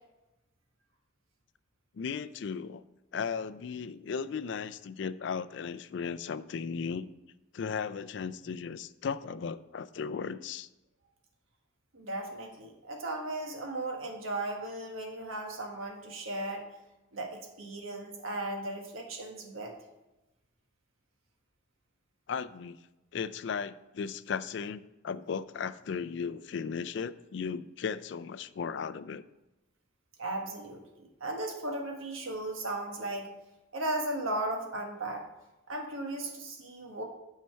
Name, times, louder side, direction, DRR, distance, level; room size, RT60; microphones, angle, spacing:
voice 1, 1.9-2.8 3.1-7.1 7.5-10.7 22.3-22.8 23.1-29.2, left 6 dB, 60° left, 14 dB, 0.3 m, -36 dB
voice 2, 11.9-16.6 17.1-19.7 30.2-33.3 33.7-35.2 35.7-37.0, right 2 dB, 90° right, 2 dB, 1.4 m, -36 dB
9.3 x 5.5 x 4.5 m, 0.99 s
head